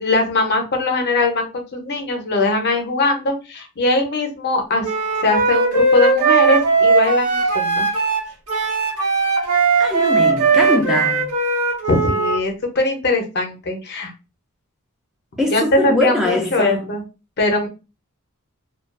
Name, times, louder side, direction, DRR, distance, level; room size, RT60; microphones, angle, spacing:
voice 1, 0.0-4.9 5.2-7.9 11.9-14.1 15.5-17.0 17.4-17.7, left 2 dB, 50° left, 0.6 m, -20 dB
Wind instrument woodwind instrument, 4.8-12.4, right 3 dB, 90° right, 0.8 m, -18 dB
voice 2, 9.8-11.3 15.4-16.8, left 1 dB, ahead, 0.3 m, -22 dB
2.3 x 2.3 x 2.4 m
head